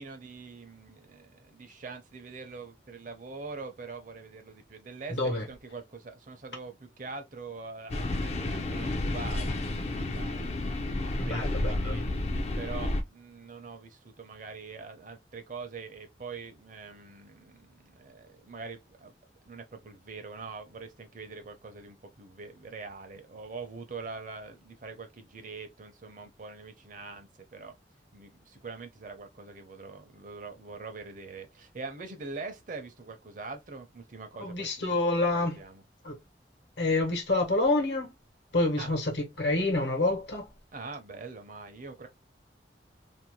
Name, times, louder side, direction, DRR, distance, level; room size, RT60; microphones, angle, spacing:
voice 1, 0.0-10.6 11.3-12.0 12.6-19.1 19.5-27.8 28.1-35.0 35.3-35.8 38.8-38.9 40.7-42.1, right 4 dB, 45° right, 0.6 m, -43 dB
voice 2, 5.1-5.5 11.2-12.0 34.4-35.6 36.0-36.2 36.8-38.1 38.5-40.5, left 2 dB, 75° left, 1.0 m, -27 dB
sound 1, 7.9-13.0, left 2 dB, 35° left, 0.4 m, -31 dB
2.6 x 2.1 x 2.9 m
head